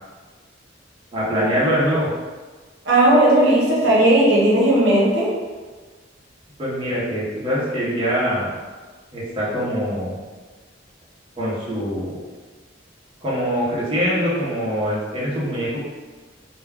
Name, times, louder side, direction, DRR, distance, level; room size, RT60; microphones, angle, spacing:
voice 1, 1.1-2.1 6.6-8.5 9.1-10.2 11.4-12.2 13.2-15.9, equal, 30° right, -8 dB, 0.7 m, -23 dB
voice 2, 2.9-5.3, right 1 dB, 70° right, -6 dB, 0.7 m, -15 dB
2.2 x 2.2 x 3.4 m, 1.4 s
head